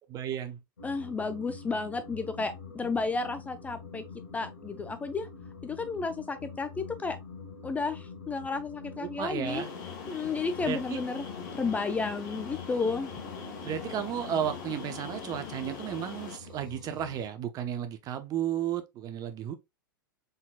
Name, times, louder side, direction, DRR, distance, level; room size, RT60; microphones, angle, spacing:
voice 1, 0.1-0.6 9.0-9.7 10.6-11.0 13.6-19.6, right 9 dB, 35° right, 0.7 m, -33 dB
sound 1, 0.8-17.3, left 4 dB, 80° left, 1.0 m, -45 dB
voice 2, 0.8-4.0 4.3-5.3 5.6-7.2 7.6-9.6 10.1-11.3 11.5-13.1, left 4 dB, 15° left, 0.4 m, -32 dB
sound 2, 9.4-16.4, left 6 dB, 55° left, 1.5 m, -42 dB
4.0 x 4.0 x 2.2 m
figure-of-eight pair, 90°, 11 cm